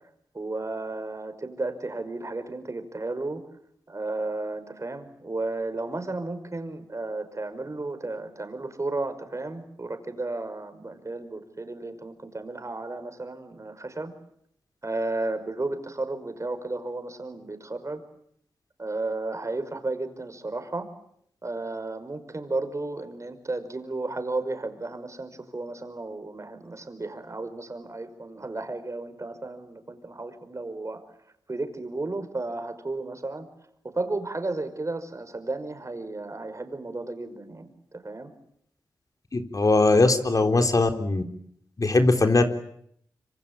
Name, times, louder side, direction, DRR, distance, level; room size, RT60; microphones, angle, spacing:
voice 1, 0.3-3.4 3.9-14.1 14.8-18.0 18.8-20.9 21.4-31.0 31.5-33.5 33.8-38.3, right 2 dB, 40° right, 9 dB, 5.4 m, -33 dB
voice 2, 39.3-41.2 41.8-42.4, left 3 dB, 45° left, 6 dB, 3.7 m, -20 dB
26.0 x 25.5 x 8.8 m, 0.71 s
cardioid pair, 50°, 8 cm